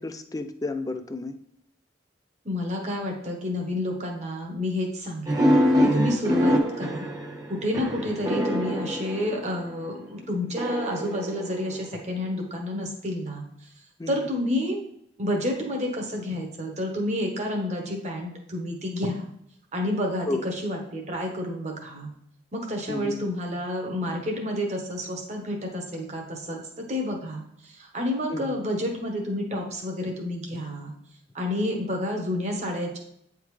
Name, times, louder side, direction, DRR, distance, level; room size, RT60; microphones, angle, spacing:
voice 1, 0.0-1.3 14.0-14.3 20.3-20.4 22.9-23.2 28.3-28.6, left 2 dB, 20° left, 9 dB, 0.3 m, -32 dB
voice 2, 2.4-5.4 5.8-7.1 7.5-13.4 14.1-14.8 15.2-19.3 19.7-22.1 22.5-30.9 31.3-33.0, left 1 dB, 35° right, 1 dB, 1.1 m, -30 dB
sound 1, 5.3-9.8 10.6-12.1, equal, 20° right, 0.7 m, -25 dB
8.6 x 3.6 x 3.2 m, 0.74 s
head